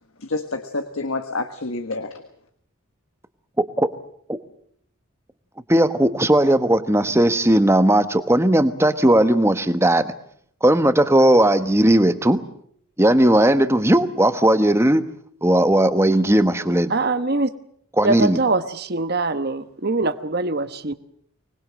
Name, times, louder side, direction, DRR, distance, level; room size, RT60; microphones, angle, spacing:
voice 1, 0.2-2.2, left 2 dB, 75° left, 8 dB, 1.5 m, -28 dB
voice 2, 3.6-3.9 4.3-4.4 5.7-10.1 10.6-12.4 13.0-15.0 15.4-16.9 18.0-18.4, right 1 dB, 10° right, 10 dB, 1.1 m, -17 dB
voice 3, 16.9-17.5 18.0-20.9, right 3 dB, 50° right, 11 dB, 1.1 m, -23 dB
25.0 x 20.5 x 7.6 m, 0.65 s
head